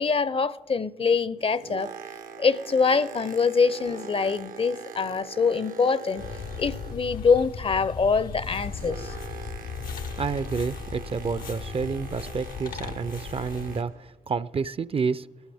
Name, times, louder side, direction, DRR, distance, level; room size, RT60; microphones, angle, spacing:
voice 1, 0.0-1.9 2.4-6.2 6.6-9.1, left 5 dB, 40° left, 0.5 m, -24 dB
Boat Water vehicle, 1.2-7.3 7.6-14.1 14.7-14.8, right 5 dB, 80° right, 0.7 m, -43 dB
sound 1, 6.2-13.8, left 6 dB, 90° left, 0.7 m, -37 dB
voice 2, 9.9-15.3, right 5 dB, 40° right, 0.4 m, -30 dB
19.5 x 12.5 x 3.4 m
cardioid pair, 50°, 14 cm